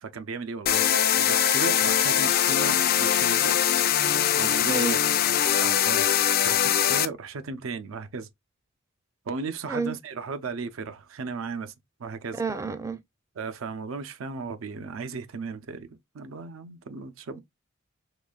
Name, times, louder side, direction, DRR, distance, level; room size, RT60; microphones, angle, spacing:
voice 1, 0.0-3.6 4.3-5.0 5.4-6.1 6.4-8.3 9.3-11.7 12.0-12.4 13.4-17.4, right 4 dB, 90° right, 0.5 m, -36 dB
sound 1, 0.7-7.1, left 10 dB, 50° left, 0.4 m, -22 dB
voice 2, 12.3-13.0, right 4 dB, 15° right, 0.4 m, -29 dB
3.9 x 3.0 x 2.3 m
head